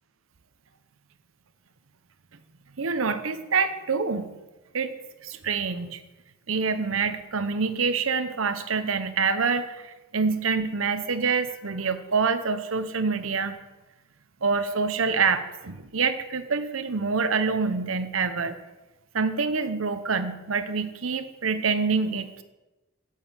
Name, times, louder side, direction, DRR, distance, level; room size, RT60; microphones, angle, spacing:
voice 1, 2.8-4.3 4.7-4.9 5.2-6.0 6.5-9.7 10.1-13.5 14.4-18.6 19.1-22.3, right 5 dB, 85° right, 10 dB, 0.8 m, -26 dB
8.7 x 6.6 x 7.4 m, 1.1 s
head